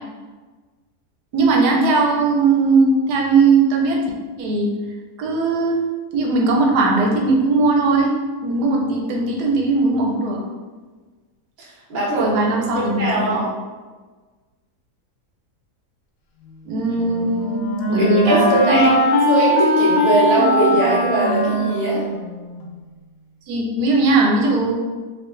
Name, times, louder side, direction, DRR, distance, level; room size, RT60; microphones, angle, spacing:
voice 1, 1.3-4.0 4.4-4.7 5.2-5.8 6.1-8.1 8.4-10.4 12.1-13.4 16.7-18.9 23.5-24.7, right 3 dB, 85° right, 0 dB, 1.2 m, -18 dB
voice 2, 11.6-12.5 12.7-13.5 18.0-18.9 19.3-22.0, right 1 dB, 40° right, -6 dB, 0.9 m, -20 dB
Wind instrument woodwind instrument, 16.9-22.7, right 1 dB, 70° left, 0.9 m, -20 dB
4.8 x 2.3 x 2.5 m, 1.3 s
omnidirectional pair, 1.7 m